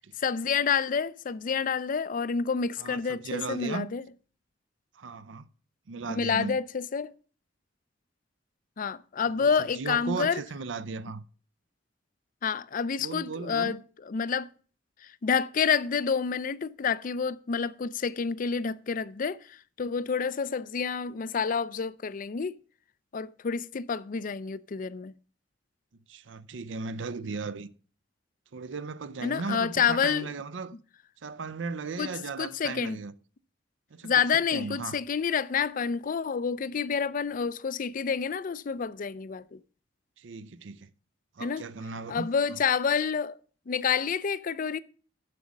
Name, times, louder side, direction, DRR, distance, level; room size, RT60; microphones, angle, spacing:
voice 1, 0.2-4.0 6.1-7.1 8.8-10.4 12.4-13.8 14.1-14.5 15.2-22.6 23.1-25.1 29.2-30.3 32.0-32.1 32.4-33.0 34.0-39.6 41.4-41.6 42.1-43.4 43.7-44.8, left 6 dB, 45° left, 0.4 m, -28 dB
voice 2, 2.8-3.9 5.0-5.5 5.9-6.6 9.3-11.2 13.0-13.8 26.1-27.7 28.5-30.7 31.2-33.1 33.9-35.0 40.2-40.9 41.4-42.6, right 4 dB, 80° right, 0.6 m, -37 dB
7.6 x 6.3 x 7.0 m
head